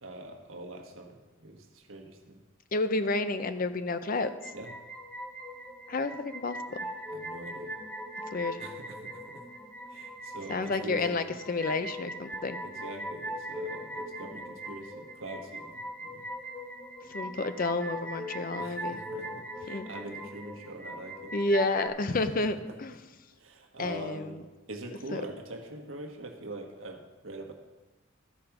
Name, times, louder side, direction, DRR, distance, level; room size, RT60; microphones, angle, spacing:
voice 1, 0.0-2.4 4.5-4.7 7.1-7.7 8.6-9.4 9.9-11.2 12.6-16.2 18.6-21.4 22.6-22.7 23.4-27.5, right 1 dB, 70° right, 3 dB, 1.3 m, -43 dB
voice 2, 2.7-4.3 5.9-6.6 8.3-8.6 10.5-12.6 17.1-19.0 19.7-19.9 21.3-22.9 23.8-24.4 25.1-25.2, left 3 dB, 40° left, 11 dB, 0.5 m, -30 dB
sound 1, 4.2-21.9, right 1 dB, 5° left, 0.7 m, -40 dB
13.5 x 5.1 x 5.9 m, 1.2 s
head